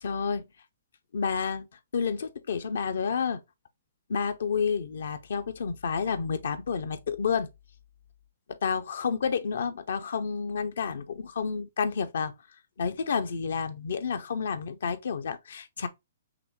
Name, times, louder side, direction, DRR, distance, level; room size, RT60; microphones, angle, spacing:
voice 1, 0.0-0.4 1.1-1.7 1.9-3.4 4.1-7.5 8.6-12.3 12.8-15.9, left 6 dB, 65° left, 0.6 m, -30 dB
5.9 x 2.1 x 3.1 m
figure-of-eight pair, 120°, 0 cm